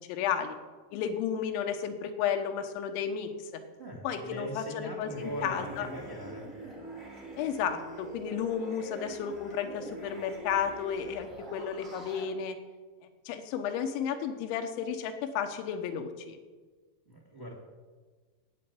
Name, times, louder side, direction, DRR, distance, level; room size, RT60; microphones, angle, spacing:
voice 1, 0.1-0.6 0.9-3.3 4.0-5.9 7.4-12.6 13.3-16.4, left 8 dB, 90° left, 7 dB, 3.4 m, -33 dB
voice 2, 3.8-6.5 17.0-17.6, equal, 90° right, -2 dB, 0.5 m, -40 dB
sound 1, 5.1-12.2, right 2 dB, 35° right, 0.7 m, -44 dB
9.5 x 8.7 x 8.5 m, 1.4 s
omnidirectional pair, 5.3 m